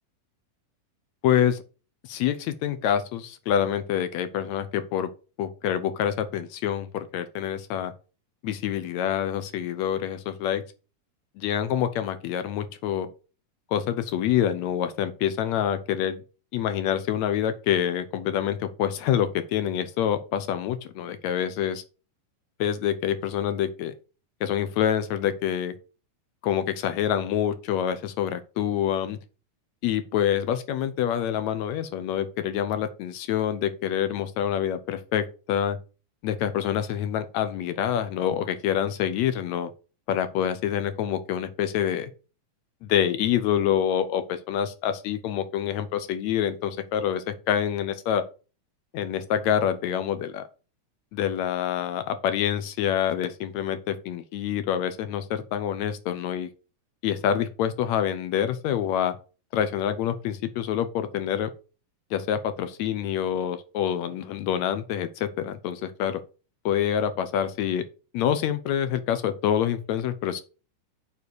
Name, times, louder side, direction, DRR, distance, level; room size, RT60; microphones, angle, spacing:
voice 1, 1.2-1.6 2.0-5.1 5.4-7.9 8.4-10.6 11.4-13.1 13.7-16.2 16.5-21.8 22.6-23.9 24.4-25.7 26.4-29.2 29.8-35.8 36.2-39.7 40.1-42.1 42.8-48.2 48.9-50.4 51.1-56.5 57.0-59.2 59.5-61.5 62.1-66.2 66.7-67.8 68.1-70.4, left 9 dB, 70° left, 1.9 m, -26 dB
6.9 x 5.5 x 6.2 m
omnidirectional pair, 3.7 m